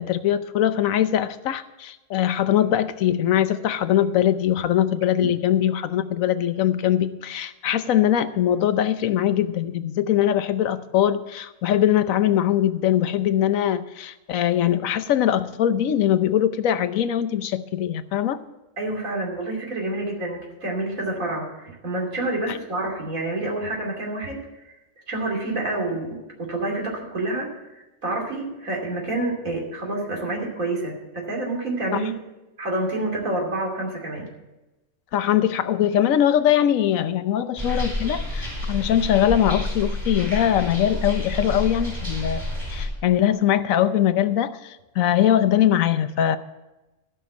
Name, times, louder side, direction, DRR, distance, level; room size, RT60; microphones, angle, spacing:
voice 1, 0.0-18.4 31.9-32.0 35.1-42.4 42.7-46.4, left 10 dB, 85° left, 12 dB, 1.1 m, -21 dB
voice 2, 18.8-24.4 25.1-27.5 28.0-32.1 32.6-34.3, right 2 dB, 85° right, -1 dB, 3.3 m, -28 dB
sound 1, 37.6-42.9, left 1 dB, 30° right, 4.2 m, -29 dB
14.5 x 6.0 x 8.0 m, 1.0 s
omnidirectional pair, 1.4 m